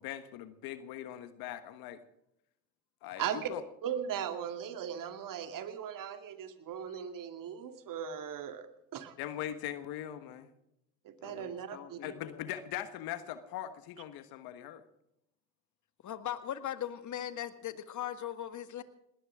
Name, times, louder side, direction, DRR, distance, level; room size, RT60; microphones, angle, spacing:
voice 1, 0.0-2.0 3.0-3.6 9.2-10.5 12.0-14.8, left 12 dB, 70° left, 11 dB, 1.4 m, -41 dB
voice 2, 3.2-3.5 3.8-8.7 8.9-9.2 11.0-12.1, right 9 dB, 60° right, 8 dB, 2.4 m, -38 dB
voice 3, 11.2-12.5 16.0-18.8, left 11 dB, 50° left, 11 dB, 1.8 m, -40 dB
19.5 x 19.0 x 3.7 m, 0.81 s
hypercardioid pair, 65°, 38 cm